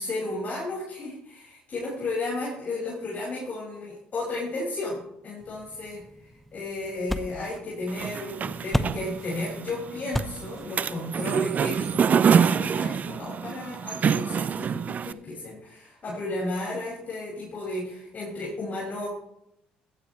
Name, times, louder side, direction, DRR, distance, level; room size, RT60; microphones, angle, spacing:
voice 1, 0.0-19.1, left 2 dB, 45° left, -4 dB, 5.9 m, -33 dB
sound 1, 5.4-12.5, equal, 5° left, 0.9 m, -36 dB
sound 2, 7.9-15.1, right 7 dB, 45° right, 0.5 m, -26 dB
16.0 x 13.0 x 3.3 m, 0.80 s
hypercardioid pair, 65°, 4 cm